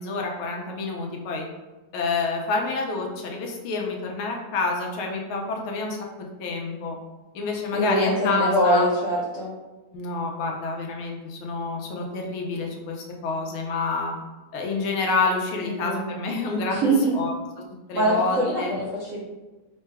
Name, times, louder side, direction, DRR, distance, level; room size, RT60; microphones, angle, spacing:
voice 1, 0.0-1.4 1.9-7.0 7.3-8.9 9.9-14.1 14.5-17.3 17.9-18.7, left 3 dB, 85° left, 0 dB, 1.6 m, -28 dB
voice 2, 7.7-9.5 15.6-16.0 16.7-17.1 17.9-19.2, right 1 dB, 60° right, -6 dB, 0.8 m, -23 dB
3.7 x 2.2 x 4.5 m, 1.1 s
omnidirectional pair, 2.2 m